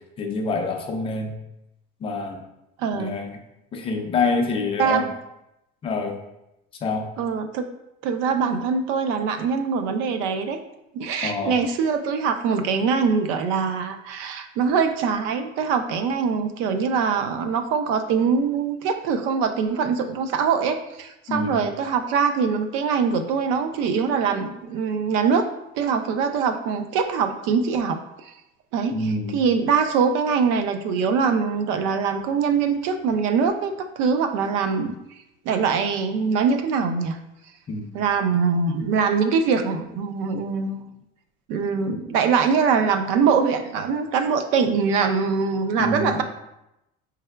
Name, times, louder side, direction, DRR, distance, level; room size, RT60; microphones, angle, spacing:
voice 1, 0.2-1.3 2.0-2.5 2.9-3.4 3.7-5.1 5.8-6.1 6.8-7.1 11.2-11.6 21.3-21.6 28.9-29.4 37.7-37.9 45.8-46.2, left 3 dB, 25° left, 2 dB, 0.4 m, -26 dB
voice 2, 2.8-3.1 4.8-5.1 7.2-7.6 8.0-10.6 10.9-25.5 25.8-28.3 28.7-29.0 29.3-34.9 35.5-37.2 37.9-41.0 41.5-46.2, right 5 dB, 75° right, 8 dB, 0.4 m, -23 dB
4.6 x 3.3 x 2.2 m, 0.88 s
cardioid pair, 165°, 21 cm